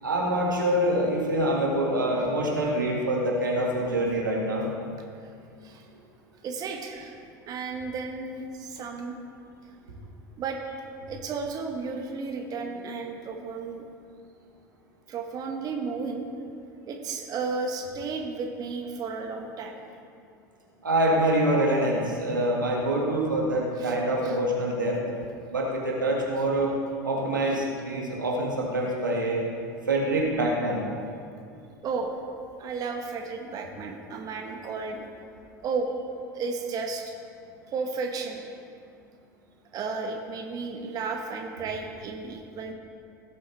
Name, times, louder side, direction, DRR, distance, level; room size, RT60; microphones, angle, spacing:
voice 1, 0.0-4.7 20.8-25.0 25.5-26.7 27.0-29.4 29.9-30.8, right 1 dB, 85° right, -2 dB, 1.9 m, -25 dB
voice 2, 6.4-7.2 7.5-9.1 10.4-10.8 11.1-13.8 15.1-16.2 16.9-19.8 23.8-24.0 24.2-24.4 31.8-32.2 32.6-35.1 35.6-35.9 36.3-37.1 37.7-38.4 39.7-42.7, right 4 dB, 40° right, 2 dB, 1.1 m, -33 dB
17.0 x 7.7 x 3.3 m, 2.4 s
figure-of-eight pair, 75°, 10 cm